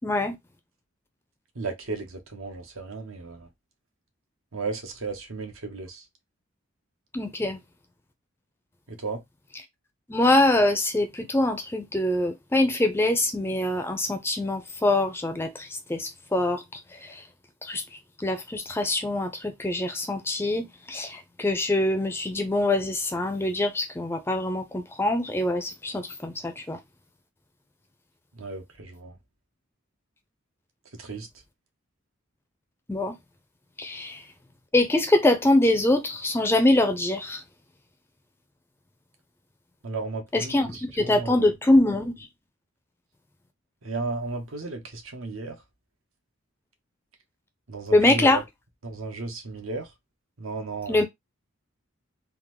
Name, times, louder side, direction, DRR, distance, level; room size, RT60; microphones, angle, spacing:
voice 1, 0.0-0.4 7.1-7.6 10.1-16.6 17.0-17.1 17.6-17.8 18.2-26.8 32.9-33.2 33.8-34.2 34.7-37.4 40.3-42.1 47.9-48.4 50.9-51.0, left 1 dB, 10° left, 0.4 m, -24 dB
voice 2, 1.6-3.5 4.5-6.0 8.9-9.2 28.4-29.1 31.0-31.3 39.8-41.5 43.8-45.6 47.7-48.4 48.8-49.9 50.4-51.0, right 3 dB, 80° right, 0.8 m, -34 dB
3.5 x 2.0 x 2.9 m
head